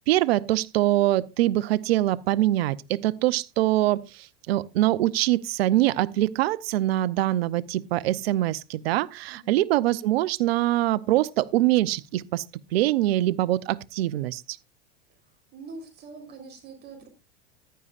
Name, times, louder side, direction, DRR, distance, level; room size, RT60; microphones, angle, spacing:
voice 1, 0.1-12.4 12.7-14.6, right 15 dB, 80° right, 0.7 m, -24 dB
voice 2, 9.3-9.6 15.5-17.1, right 3 dB, 35° right, 4.0 m, -44 dB
15.0 x 11.0 x 2.5 m
supercardioid pair, 115°, 30 cm